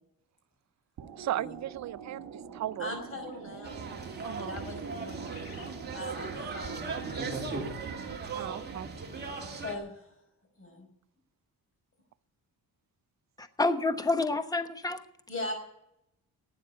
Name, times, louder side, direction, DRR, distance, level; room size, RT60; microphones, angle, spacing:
sound 1, 1.0-8.2, right 7 dB, 75° right, 2.0 m, -44 dB
voice 1, 1.2-2.9 4.2-4.6 8.3-8.9, right 13 dB, 50° right, 0.4 m, -36 dB
sound 2, 2.7-2.8 3.3-3.4 4.1-4.3 4.6-5.8 6.2-6.3, left 6 dB, 85° left, 3.8 m, -55 dB
voice 2, 2.8-3.8 4.3-5.3 5.9-7.5 9.6-10.1 10.6-10.9 15.3-15.5, left 2 dB, 35° left, 5.3 m, -40 dB
sound 3, 3.6-9.8, right 4 dB, 25° right, 2.5 m, -38 dB
voice 3, 13.4-15.0, left 2 dB, 10° left, 1.0 m, -28 dB
12.0 x 9.2 x 9.9 m
cardioid pair, 145°, 36 cm